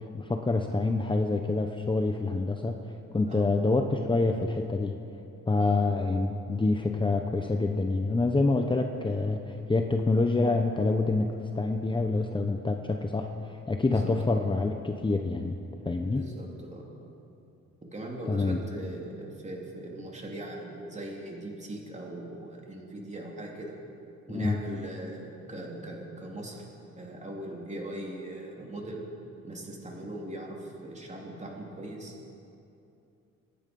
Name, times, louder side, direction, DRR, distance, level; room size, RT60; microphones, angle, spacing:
voice 1, 0.1-2.9 3.1-5.0 5.5-15.6 15.8-16.2 18.3-18.6 24.3-24.6, left 3 dB, 15° left, 4 dB, 0.9 m, -27 dB
voice 2, 5.6-5.9 13.8-14.1 16.2-17.1 17.9-23.8 24.3-26.7 27.0-29.1 29.4-32.2, right 1 dB, 25° right, -1 dB, 3.4 m, -40 dB
26.0 x 9.9 x 5.5 m, 2.7 s
cardioid pair, 90°, 30 cm